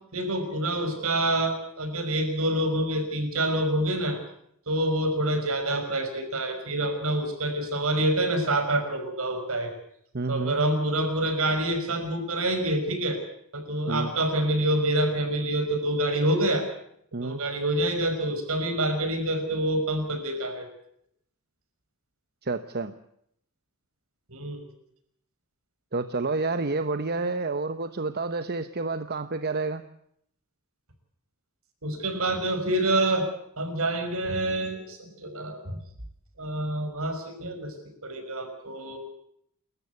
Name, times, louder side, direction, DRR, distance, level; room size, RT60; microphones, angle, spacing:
voice 1, 0.1-4.2 4.7-9.7 10.3-13.2 13.5-16.7 17.1-20.7 24.3-24.7 31.8-33.3 33.6-35.8 36.4-37.7 38.0-39.0, right 1 dB, 70° right, 7 dB, 5.8 m, -27 dB
voice 2, 10.1-10.6 13.9-14.1 17.1-17.4 22.4-22.9 25.9-29.8, right 3 dB, 45° right, 10 dB, 1.0 m, -29 dB
29.5 x 14.0 x 8.1 m, 0.71 s
head